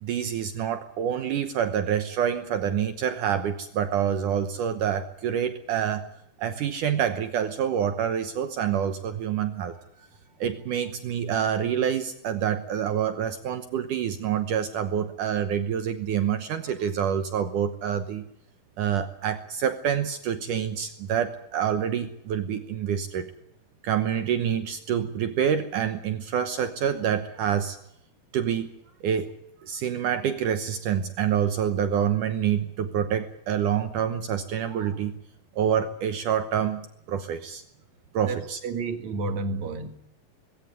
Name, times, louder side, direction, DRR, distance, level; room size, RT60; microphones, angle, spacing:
voice 1, 0.0-6.1 6.4-9.8 10.4-18.3 18.8-23.3 23.8-27.8 28.3-28.7 29.0-29.3 29.6-35.2 35.6-37.6 38.1-38.6, right 8 dB, 70° right, 9 dB, 2.0 m, -27 dB
voice 2, 38.6-39.9, right 3 dB, 55° right, 8 dB, 2.5 m, -30 dB
20.0 x 17.0 x 9.8 m, 0.78 s
omnidirectional pair, 4.8 m